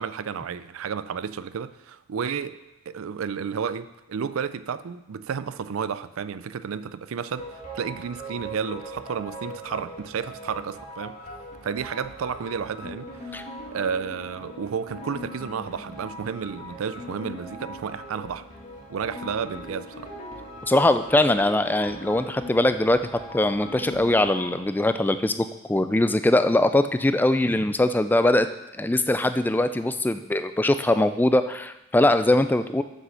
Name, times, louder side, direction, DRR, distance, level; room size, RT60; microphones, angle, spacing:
voice 1, 0.0-2.6 2.9-11.2 11.6-18.5 18.9-20.1, right 6 dB, 75° right, 14 dB, 0.4 m, -32 dB
sound 1, 7.4-24.6, equal, 35° left, 1.7 m, -40 dB
voice 2, 20.7-28.5 28.8-32.8, left 1 dB, 10° left, 10 dB, 0.3 m, -21 dB
7.4 x 6.5 x 6.3 m, 0.96 s
head